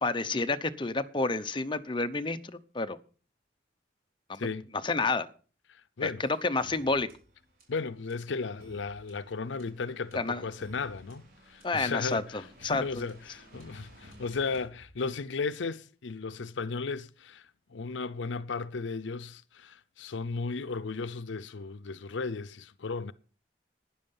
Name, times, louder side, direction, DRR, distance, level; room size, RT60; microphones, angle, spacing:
voice 1, 0.0-3.0 4.3-4.5 4.8-5.3 6.0-7.1 10.1-10.4 11.6-13.0, left 3 dB, 25° left, 0.8 m, -30 dB
voice 2, 5.7-6.2 7.7-23.1, left 4 dB, 80° left, 0.6 m, -35 dB
sound 1, 6.6-15.4, equal, 50° right, 4.4 m, -56 dB
12.0 x 10.0 x 5.5 m
head